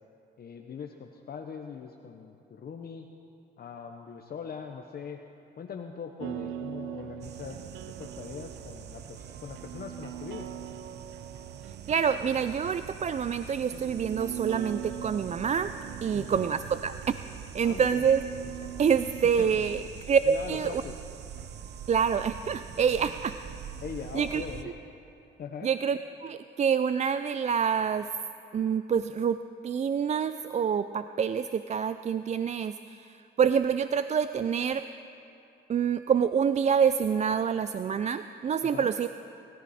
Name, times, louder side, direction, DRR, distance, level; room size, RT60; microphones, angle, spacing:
voice 1, 0.4-3.1 3.6-5.2 5.6-7.6 8.0-10.6 16.1-16.5 17.6-18.1 19.4-19.7 20.2-21.0 23.8-24.7 25.4-25.7 38.6-38.9, left 6 dB, 50° left, 4 dB, 1.0 m, -41 dB
sound 1, 6.2-19.9, right 10 dB, 90° right, 0.6 m, -42 dB
sound 2, 7.2-24.6, right 8 dB, 60° right, 0.8 m, -44 dB
voice 2, 11.9-15.7 16.0-16.9 17.5-18.2 18.8-19.8 20.1-20.8 21.9-23.3 24.1-24.4 25.6-28.1 28.5-34.9 35.7-39.1, right 7 dB, 35° right, 12 dB, 0.4 m, -27 dB
24.0 x 13.5 x 4.3 m, 2.8 s
cardioid pair, 90°, 20 cm